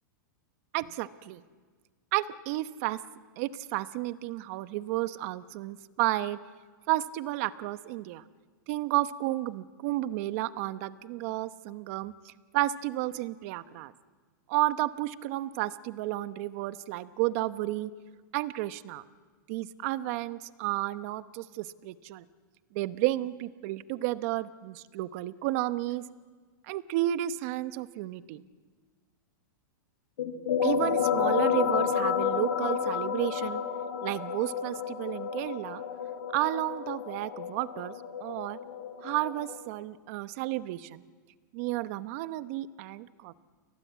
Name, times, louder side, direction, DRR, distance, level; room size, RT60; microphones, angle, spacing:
voice 1, 0.7-1.4 2.1-3.0 3.4-6.4 6.9-8.2 8.7-13.9 14.5-17.9 18.3-19.0 19.5-22.2 22.7-26.0 26.6-28.4 30.6-33.6 34.0-35.8 36.3-38.6 39.0-41.0 41.5-43.3, right 16 dB, 45° right, 13 dB, 1.0 m, -32 dB
sound 1, 30.2-39.6, left 8 dB, 75° left, 6.0 m, -30 dB
29.5 x 24.0 x 8.2 m, 1.5 s
supercardioid pair, 150°, 11 cm